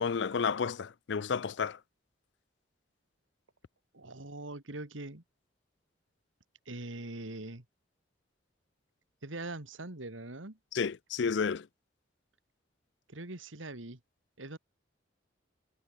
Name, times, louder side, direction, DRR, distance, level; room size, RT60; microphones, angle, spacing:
voice 1, 0.0-1.8 10.7-11.7, left 6 dB, 65° left, 0.5 m, -31 dB
voice 2, 3.9-5.2 6.7-7.6 9.2-10.6 13.1-14.0 14.4-14.6, right 2 dB, 85° right, 2.6 m, -42 dB
head